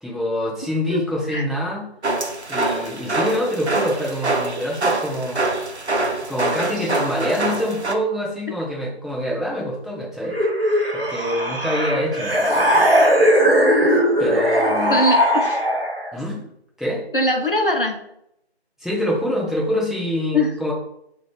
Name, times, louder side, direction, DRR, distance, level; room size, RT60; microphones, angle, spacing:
voice 1, 0.0-1.9 2.5-5.5 6.3-10.4 10.9-12.9 14.2-14.9 16.1-16.5 16.8-17.0 18.8-20.7, equal, ahead, -5 dB, 0.5 m, -25 dB
sound 1, 2.0-7.9, right 2 dB, 90° right, 0.7 m, -24 dB
sound 2, 10.3-16.1, equal, 60° right, 1.0 m, -18 dB
voice 2, 14.9-15.6 17.1-18.0 20.3-20.5, left 1 dB, 55° left, 3 dB, 0.6 m, -21 dB
3.5 x 2.4 x 3.1 m, 0.76 s
figure-of-eight pair, 175°, 32 cm